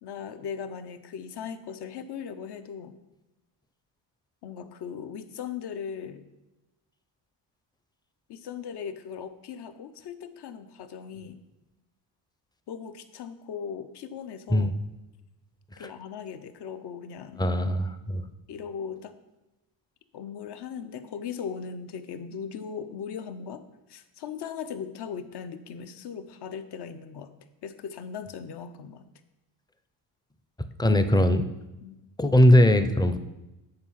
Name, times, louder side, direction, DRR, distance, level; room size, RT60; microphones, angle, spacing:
voice 1, 0.0-3.0 4.4-6.3 8.3-11.4 12.7-14.7 15.8-17.4 18.5-19.2 20.1-23.6 23.9-27.3 27.6-29.0 31.8-32.0, left 7 dB, 60° left, 10 dB, 0.8 m, -38 dB
voice 2, 17.4-18.2 30.8-31.4 32.2-33.2, left 1 dB, 10° left, 10 dB, 0.5 m, -20 dB
8.9 x 4.5 x 5.7 m, 0.99 s
cardioid pair, 105°, 45 cm